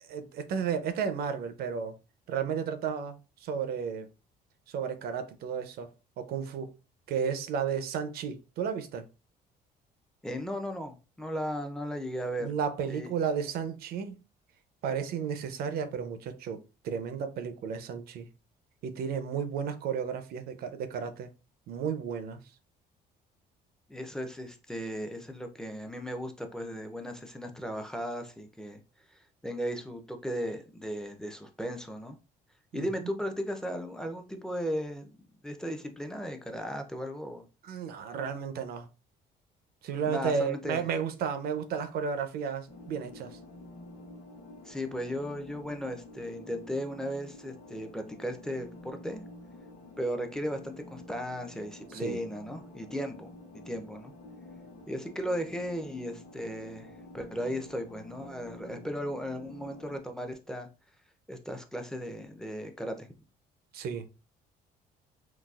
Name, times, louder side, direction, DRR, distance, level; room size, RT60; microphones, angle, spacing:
voice 1, 0.0-1.9 2.3-4.1 4.7-5.9 6.2-6.7 7.1-9.0 12.4-14.2 14.8-16.6 16.8-18.3 18.8-21.3 21.7-22.4 32.7-32.9 37.6-38.9 39.8-43.4 51.9-52.2 63.7-64.1, right 7 dB, 65° right, 0.5 m, -33 dB
voice 2, 10.2-12.5 12.9-13.1 23.9-28.8 29.4-32.2 32.7-35.2 35.4-37.5 40.0-40.8 44.6-49.2 50.0-53.3 53.6-54.1 54.9-60.7 61.3-63.1, equal, 5° left, 0.5 m, -36 dB
sound 1, 42.7-60.0, left 2 dB, 45° left, 1.0 m, -49 dB
3.9 x 2.3 x 2.3 m
cardioid pair, 110°, 17 cm